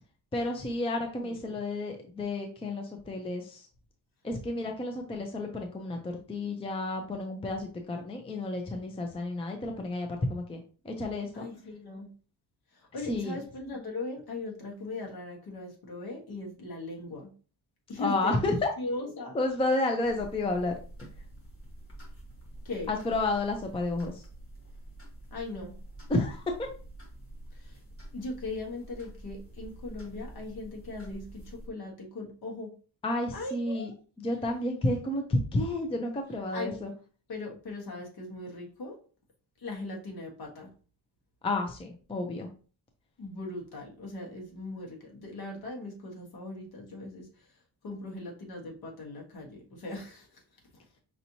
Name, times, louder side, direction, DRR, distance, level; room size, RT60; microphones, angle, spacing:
voice 1, 0.3-3.7 4.2-11.5 13.1-13.4 18.0-18.5 19.3-20.7 22.9-24.3 26.1-26.7 33.0-33.9 34.2-36.9 41.4-42.5, left 2 dB, 15° left, 3 dB, 0.4 m, -31 dB
voice 2, 1.2-1.6 11.3-12.1 12.7-17.3 17.9-19.4 22.6-23.0 25.3-25.7 27.5-27.8 28.1-32.8 33.3-33.9 36.5-36.7 37.3-39.0 39.6-40.7 43.2-50.4, left 2 dB, 60° left, 0 dB, 1.4 m, -39 dB
sound 1, 20.0-31.7, right 1 dB, 30° left, 1.3 m, -47 dB
5.4 x 2.9 x 2.7 m, 0.38 s
wide cardioid pair, 175°, 42 cm